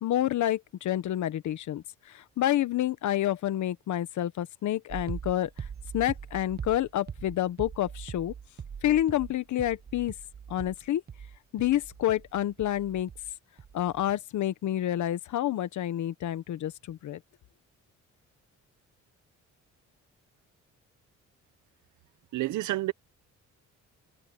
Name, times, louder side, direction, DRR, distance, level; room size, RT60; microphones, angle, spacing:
voice 1, 0.0-5.5 5.9-8.3 8.8-10.1 10.5-11.0 11.5-13.1 13.7-17.2, left 12 dB, 70° left, 1.3 m, -28 dB
sound 1, 4.9-13.3 13.6-14.1, right 7 dB, 35° right, 0.9 m, -42 dB
voice 2, 22.3-22.9, right 16 dB, 80° right, 0.9 m, -29 dB
cardioid pair, 90°, 30 cm